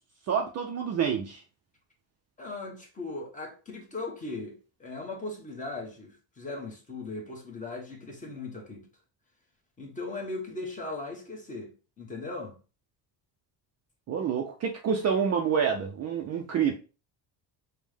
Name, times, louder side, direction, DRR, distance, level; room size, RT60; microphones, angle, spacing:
voice 1, 0.3-1.4 14.1-16.8, right 7 dB, 40° right, 0.4 m, -27 dB
voice 2, 2.4-8.9 9.8-12.6, left 3 dB, 20° left, 0.9 m, -38 dB
5.3 x 2.1 x 3.3 m
cardioid pair, 165°, 43 cm